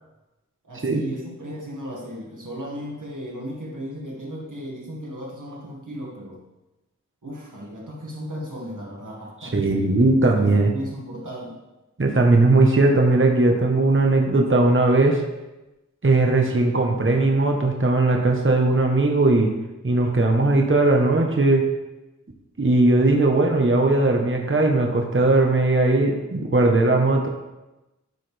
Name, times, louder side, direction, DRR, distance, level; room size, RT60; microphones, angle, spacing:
voice 1, 0.6-6.4 7.2-9.9 10.2-11.6, equal, 90° right, -2 dB, 1.9 m, -35 dB
voice 2, 9.4-10.7 12.0-15.2 16.0-19.5 19.8-21.6 22.6-27.3, right 2 dB, 40° right, 1 dB, 1.1 m, -18 dB
12.0 x 6.7 x 3.4 m, 1.0 s
wide cardioid pair, 45°, 30 cm